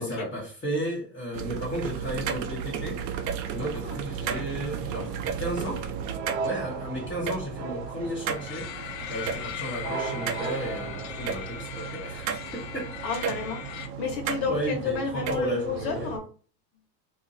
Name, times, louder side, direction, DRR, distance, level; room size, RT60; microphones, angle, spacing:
voice 1, 0.0-5.9 6.4-12.9 14.5-16.2, equal, 15° left, 0.9 m, -34 dB
sound 1, 1.3-16.2, right 7 dB, 75° right, 0.7 m, -34 dB
sound 2, 3.8-11.4, right 1 dB, 20° right, 0.4 m, -48 dB
sound 3, 8.3-13.9, left 9 dB, 85° left, 0.6 m, -39 dB
voice 2, 13.0-16.3, left 5 dB, 65° left, 1.2 m, -31 dB
2.6 x 2.5 x 3.8 m
supercardioid pair, 170°, 50 cm